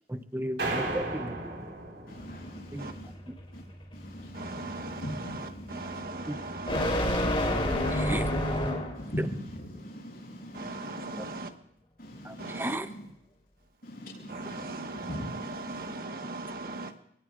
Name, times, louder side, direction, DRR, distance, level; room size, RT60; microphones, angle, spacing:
voice 1, 0.1-1.4 2.7-2.8 6.3-6.4 7.9-8.2 11.2-11.3 12.2-12.9, right 1 dB, 10° right, 0.7 m, -34 dB
sound 1, 0.6-3.0, right 2 dB, 75° right, 4.6 m, -35 dB
voice 2, 2.1-3.1 3.5-3.7 3.9-6.1 7.4-8.4 8.9-11.4 12.0-13.1 13.8-16.0, equal, 60° left, 6.1 m, -42 dB
sound 2, 2.2-9.1, left 1 dB, 30° left, 3.5 m, -31 dB
voice 3, 4.3-5.0 5.7-6.9 10.5-11.5 12.4-12.8 14.3-16.9, right 2 dB, 55° right, 1.4 m, -38 dB
29.0 x 18.0 x 2.5 m
head